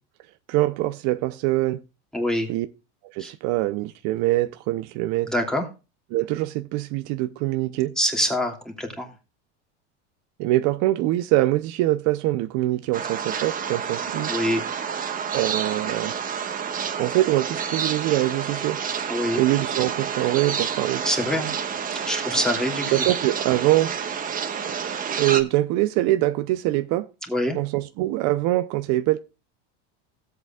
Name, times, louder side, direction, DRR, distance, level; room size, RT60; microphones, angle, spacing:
voice 1, 0.5-1.8 2.5-2.7 3.0-5.3 6.1-7.9 10.4-14.3 15.3-16.1 17.0-18.8 19.3-21.0 22.9-23.9 25.2-27.1 27.5-29.2, right 16 dB, 55° right, 0.8 m, -23 dB
voice 2, 2.1-2.5 3.2-3.3 5.3-5.7 8.0-9.1 14.3-14.6 19.1-19.4 21.0-21.5 22.0-22.9 27.3-27.6, equal, ahead, 2.8 m, -25 dB
sound 1, 12.9-25.4, right 7 dB, 25° right, 1.4 m, -29 dB
17.0 x 8.2 x 2.4 m
supercardioid pair, 135°, 35 cm